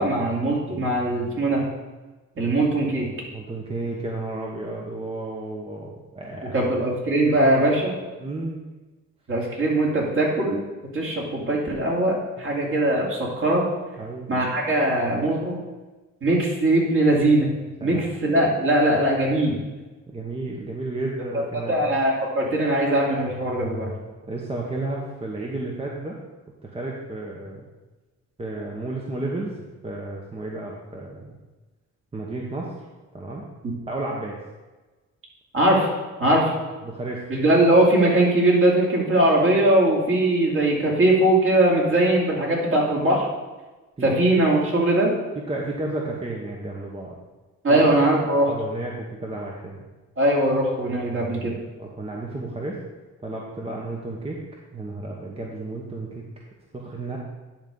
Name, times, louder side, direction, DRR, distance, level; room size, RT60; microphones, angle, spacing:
voice 1, 0.0-1.6 2.4-3.1 6.5-8.0 9.3-10.6 10.9-13.7 14.3-15.6 16.2-17.5 17.8-19.5 21.7-23.9 35.5-35.9 36.2-36.5 37.3-43.3 44.0-45.1 47.6-48.5 50.2-51.5, right 1 dB, 45° right, -4 dB, 2.7 m, -20 dB
voice 2, 3.3-6.8 7.3-7.6 8.2-8.6 12.4-12.5 14.0-14.3 17.8-18.1 20.1-21.8 24.3-26.2 26.6-27.6 28.4-29.5 29.8-31.4 32.1-32.7 33.1-33.4 33.9-34.4 36.3-36.5 36.8-37.2 44.0-44.2 45.3-47.1 47.7-47.8 48.3-49.0 49.2-49.8 51.8-52.8 53.2-54.4 54.7-56.2 56.7-57.2, right 2 dB, 20° right, -2 dB, 1.1 m, -32 dB
10.0 x 3.6 x 5.3 m, 1.2 s
cardioid pair, 90°, 30 cm